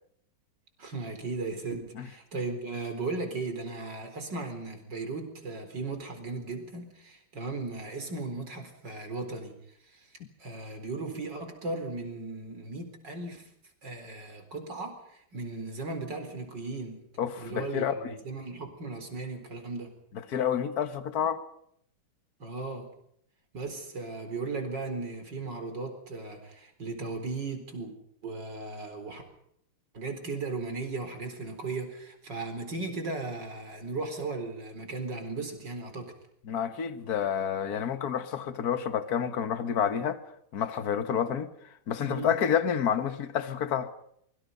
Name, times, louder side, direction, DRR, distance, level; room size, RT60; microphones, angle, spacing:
voice 1, 0.8-9.5 9.8-10.1 10.4-13.5 13.8-17.0 17.4-19.9 22.4-22.9 23.5-27.9 28.2-29.2 29.9-36.1 42.0-42.3, right 3 dB, 55° right, 4.9 m, -36 dB
voice 2, 17.2-18.1 20.3-21.4 36.5-40.2 40.5-41.5 41.9-43.9, left 8 dB, 50° left, 1.9 m, -29 dB
25.5 x 24.0 x 5.4 m
omnidirectional pair, 2.4 m